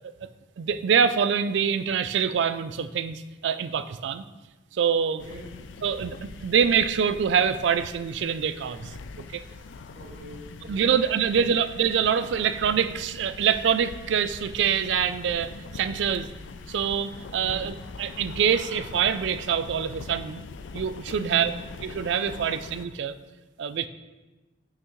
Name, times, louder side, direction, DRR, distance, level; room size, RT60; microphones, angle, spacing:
voice 1, 0.6-4.2 4.7-5.2 5.8-6.2 6.4-8.9 9.3-9.4 10.7-16.3 16.7-20.4 20.7-21.5 21.9-23.1 23.6-23.9, right 7 dB, 70° right, 12 dB, 0.3 m, -25 dB
voice 2, 5.1-5.6 9.9-10.9 11.3-11.5 17.4-17.7 21.2-21.6, equal, 45° right, -4 dB, 1.9 m, -43 dB
sound 1, 5.2-22.8, left 4 dB, 75° left, 0.4 m, -42 dB
6.4 x 5.7 x 3.1 m, 1.1 s
head